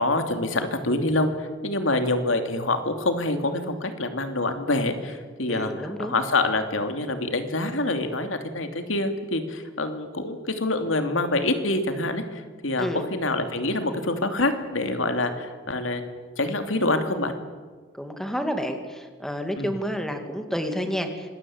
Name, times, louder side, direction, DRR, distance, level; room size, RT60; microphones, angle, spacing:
voice 1, 0.0-17.3 19.6-19.7, left 2 dB, 85° left, 7 dB, 2.8 m, -26 dB
voice 2, 5.5-6.1 12.8-13.1 17.9-21.3, equal, ahead, 6 dB, 2.4 m, -30 dB
26.0 x 20.0 x 8.8 m, 1.5 s
head